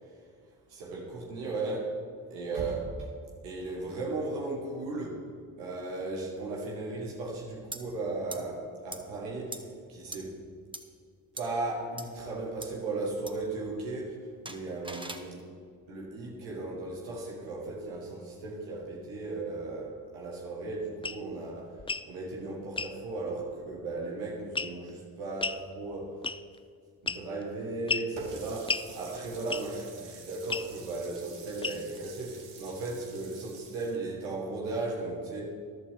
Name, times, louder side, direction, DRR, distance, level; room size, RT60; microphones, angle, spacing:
voice 1, 0.7-1.9 2.3-3.1 3.4-5.2 5.6-10.4 11.3-14.2 14.4-15.5 15.9-26.2 27.0-35.4, right 2 dB, 90° right, -3 dB, 1.9 m, -36 dB
sound 1, 7.7-7.8 8.3-8.4 8.9-9.0 9.5-9.6 10.1-10.2 10.7-10.8 11.4-11.5 12.0-12.1 12.6-12.7 13.3-13.4 14.5-15.3, right 1 dB, 10° right, 1.3 m, -40 dB
sound 2, 21.0-21.2 21.8-22.1 22.8-22.9 24.6-24.9 25.4-25.6 26.2-26.6 27.1-27.4 27.9-28.1 28.7-28.9 29.5-29.8 30.5-30.7 31.6-32.0, left 4 dB, 10° left, 0.3 m, -32 dB
Water tap faucet, 28.2-34.0, right 3 dB, 60° right, 2.0 m, -47 dB
14.5 x 11.5 x 3.7 m, 2.1 s
hypercardioid pair, 40°, 48 cm